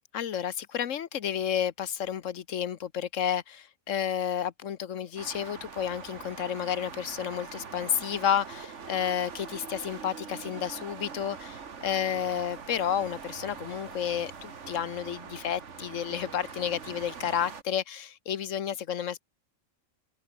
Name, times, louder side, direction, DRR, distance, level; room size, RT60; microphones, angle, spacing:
voice 1, 0.1-19.2, left 9 dB, 70° left, 1.4 m, -31 dB
sound 1, 5.2-17.6, right 6 dB, 60° right, 1.8 m, -43 dB
open air
omnidirectional pair, 1.4 m